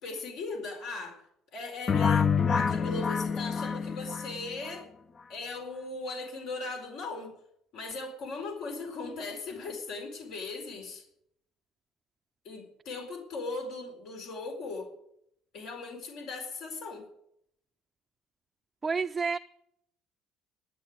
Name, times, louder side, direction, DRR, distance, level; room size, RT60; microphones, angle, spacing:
voice 1, 0.0-1.2 1.5-4.9 5.3-7.3 7.7-11.0 12.4-14.9 15.5-17.1, left 3 dB, 70° left, 4.4 m, -38 dB
sound 1, 1.9-4.7, left 6 dB, 35° left, 0.6 m, -27 dB
voice 2, 18.8-19.4, right 5 dB, 20° right, 0.5 m, -29 dB
13.0 x 9.3 x 9.5 m
cardioid pair, 110°, 0 cm